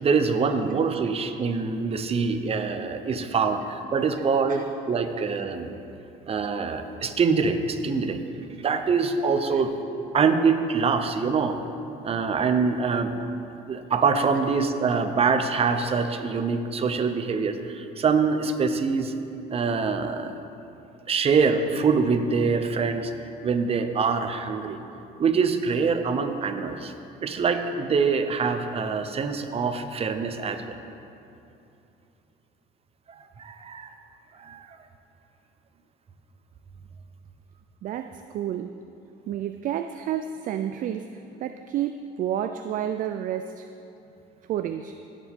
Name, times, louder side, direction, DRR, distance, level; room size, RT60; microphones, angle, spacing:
voice 1, 0.0-5.7 6.3-8.2 8.6-9.7 10.1-11.6 12.0-13.1 13.7-19.1 19.5-20.4 21.1-24.8 25.2-26.9 27.2-30.8 33.1-33.9 34.3-34.7, right 5 dB, 35° right, 8 dB, 0.8 m, -24 dB
voice 2, 37.8-38.8 39.3-43.7 44.5-44.9, right 10 dB, 55° right, 9 dB, 0.4 m, -30 dB
16.5 x 7.4 x 3.6 m, 2.8 s
cardioid pair, 110°, 17 cm